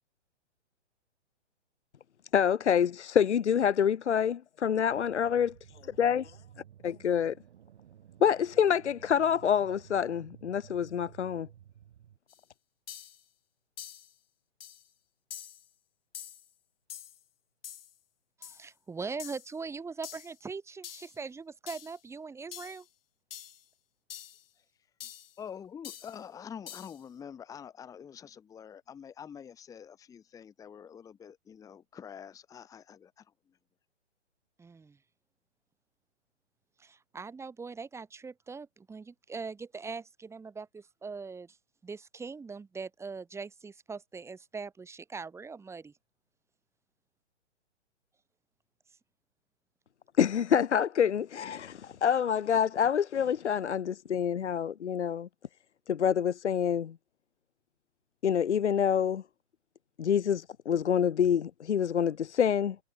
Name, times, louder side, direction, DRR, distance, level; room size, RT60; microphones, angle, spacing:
voice 1, 2.3-5.5 5.8-6.4 6.8-7.3 8.2-11.5 50.2-55.3 55.9-56.9 58.2-59.2 60.0-62.8, left 8 dB, 70° left, 0.7 m, -27 dB
sound 1, 4.9-12.2, right 10 dB, 50° right, 3.4 m, -54 dB
sound 2, 12.3-12.4 12.9-13.2 13.8-14.1 14.6-14.9 15.3-15.7 16.1-16.5 16.9-17.2 17.6-17.9 18.4-18.7 19.2-19.5 20.0-20.4 20.8-21.2 21.7-22.0 22.5-22.8 23.3-23.6 24.1-24.4 25.0-25.3 25.8-26.2 26.7-27.0, left 10 dB, 50° left, 3.8 m, -46 dB
voice 2, 18.4-22.9 34.6-35.0 36.8-41.6 41.8-45.9, right 4 dB, 5° right, 4.1 m, -41 dB
voice 3, 25.4-33.2, left 8 dB, 10° left, 1.4 m, -46 dB
figure-of-eight pair, 125°, 36 cm